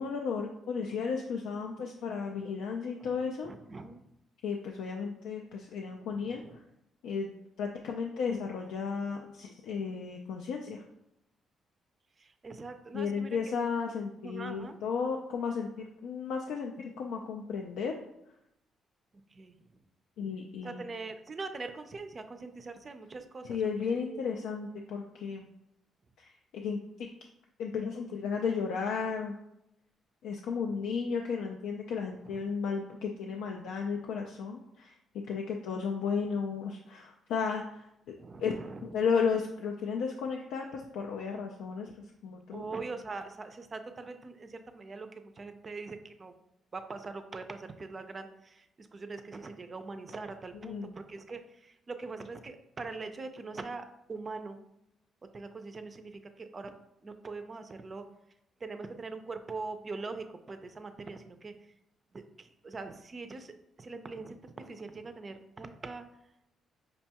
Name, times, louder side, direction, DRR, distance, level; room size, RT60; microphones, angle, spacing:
voice 1, 0.0-3.5 4.4-6.4 7.0-10.8 12.9-17.9 20.2-20.8 23.4-25.5 26.2-26.8 27.6-29.4 30.2-34.9 35.3-37.8 38.4-38.5 38.8-41.9 42.2-42.6 50.6-50.9, left 5 dB, 90° left, 1 dB, 0.3 m, -34 dB
voice 2, 3.0-4.0 6.2-6.6 12.2-13.5 14.2-14.8 19.3-19.6 20.6-24.2 30.7-30.8 32.2-32.4 38.2-38.9 42.5-46.3 46.7-54.6 55.3-56.7 57.0-58.1 58.6-61.6 62.1-66.1, right 3 dB, 35° right, 8 dB, 0.4 m, -42 dB
5.2 x 2.2 x 2.8 m, 0.83 s
cardioid pair, 90°, 0 cm